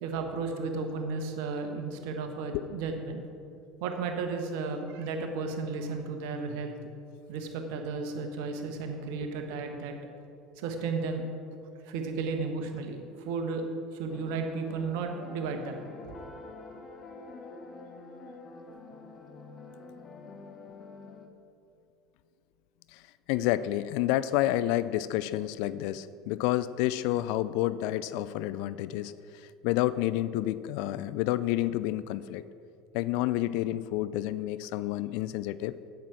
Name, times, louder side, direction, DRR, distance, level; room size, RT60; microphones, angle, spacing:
voice 1, 0.0-3.2 3.8-6.8 7.3-9.9 10.6-11.2 11.8-13.7 13.9-15.8 16.2-16.3, right 4 dB, 65° right, 5 dB, 1.2 m, -34 dB
sound 1, 14.1-21.3, left 3 dB, 35° left, 1.1 m, -47 dB
voice 2, 23.3-32.4 32.9-35.7, left 14 dB, 60° left, 16 dB, 0.3 m, -29 dB
8.6 x 8.2 x 6.1 m, 2.5 s
figure-of-eight pair, 70°, 0 cm